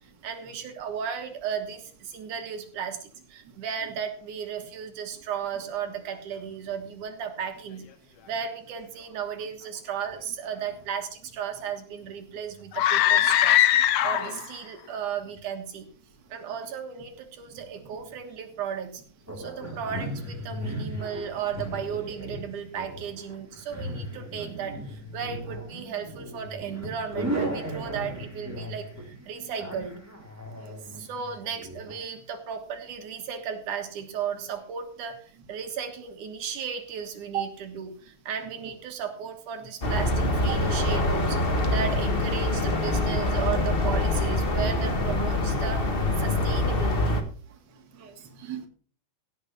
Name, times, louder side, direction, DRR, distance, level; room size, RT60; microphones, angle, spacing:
voice 1, 0.2-7.9 8.3-13.6 14.0-15.9 16.3-19.0 19.4-30.0 30.9-47.2, right 7 dB, 80° right, 6 dB, 3.0 m, -35 dB
sound 1, 12.7-14.5, left 12 dB, 75° left, 1.5 m, -21 dB
sound 2, 19.3-31.9, right 1 dB, 5° right, 2.7 m, -36 dB
sound 3, 39.8-47.2, left 2 dB, 30° left, 1.0 m, -25 dB
voice 2, 48.0-48.7, right 10 dB, 40° right, 4 dB, 2.4 m, -35 dB
16.5 x 6.5 x 5.6 m, 0.43 s
omnidirectional pair, 3.5 m